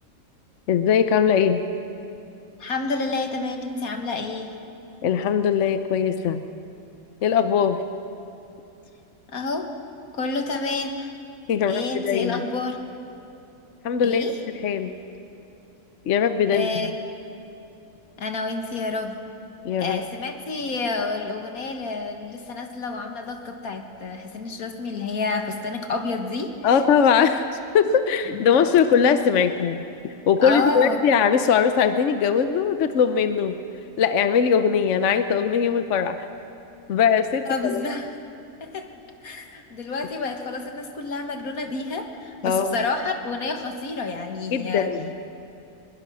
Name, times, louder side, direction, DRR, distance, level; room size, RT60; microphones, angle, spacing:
voice 1, 0.7-1.6 5.0-6.4 7.2-7.8 11.5-12.4 13.8-14.3 14.6-14.9 16.1-16.9 19.6-20.0 26.6-27.5 27.7-33.6 34.0-36.2 36.9-37.8 42.4-42.8 44.5-45.1, left 7 dB, 60° left, 9 dB, 1.1 m, -20 dB
voice 2, 2.6-4.5 9.3-9.7 10.1-11.1 11.7-12.8 14.0-14.4 16.5-16.9 18.2-19.2 19.8-26.8 28.3-28.4 30.4-31.0 37.5-38.1 38.6-38.9 39.2-44.9, left 3 dB, 85° left, 5 dB, 2.0 m, -29 dB
23.0 x 21.5 x 6.3 m, 2.9 s
omnidirectional pair, 1.5 m